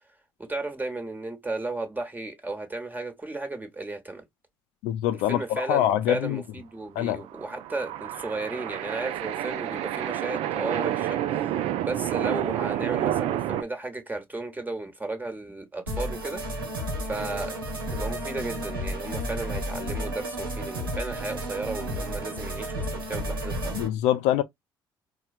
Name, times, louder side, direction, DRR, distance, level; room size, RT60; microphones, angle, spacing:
voice 1, 0.4-4.2 5.1-11.5 11.8-16.4 17.0-23.7, right 2 dB, 15° right, 1.2 m, -34 dB
voice 2, 4.8-6.4 7.0-7.2 23.7-24.4, left 12 dB, 70° left, 0.4 m, -24 dB
sound 1, 7.2-13.6, right 12 dB, 60° right, 0.4 m, -29 dB
sound 2, 15.9-23.9, right 1 dB, 90° right, 0.8 m, -32 dB
4.2 x 2.1 x 2.4 m
hypercardioid pair, 50°, 11 cm